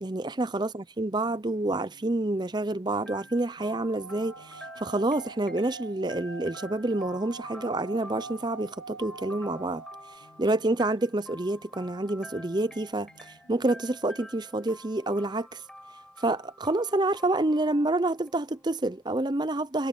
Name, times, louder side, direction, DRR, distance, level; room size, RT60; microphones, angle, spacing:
voice 1, 0.0-9.8 10.4-13.1 13.5-15.6 16.2-19.9, right 2 dB, 20° right, 0.6 m, -28 dB
sound 1, 1.2-14.2, left 1 dB, 75° left, 3.3 m, -60 dB
sound 2, 3.1-18.8, left 1 dB, 5° left, 7.0 m, -48 dB
Singing / Glass, 3.6-10.2, right 4 dB, 55° right, 0.8 m, -46 dB
head